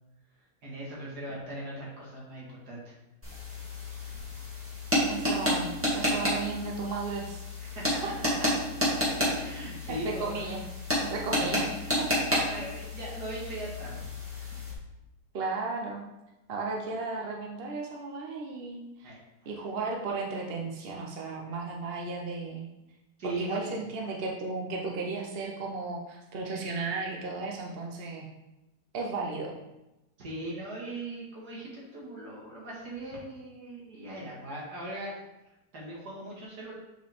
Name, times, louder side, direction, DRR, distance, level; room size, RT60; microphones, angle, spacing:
voice 1, 0.6-2.9 7.6-8.0 9.2-10.4 11.4-14.0 14.3-14.6 19.0-19.2 23.2-23.9 30.2-35.1 35.7-36.7, right 1 dB, 85° right, -5 dB, 2.5 m, -39 dB
sound 1, 3.2-14.7, equal, 10° right, 2.0 m, -31 dB
voice 2, 5.1-7.4 9.9-10.6 11.1-11.7 15.3-16.1 16.5-19.1 19.5-22.7 23.2-28.3 28.9-29.5, right 3 dB, 45° right, -1 dB, 0.9 m, -34 dB
7.2 x 5.1 x 3.6 m, 0.96 s
omnidirectional pair, 1.7 m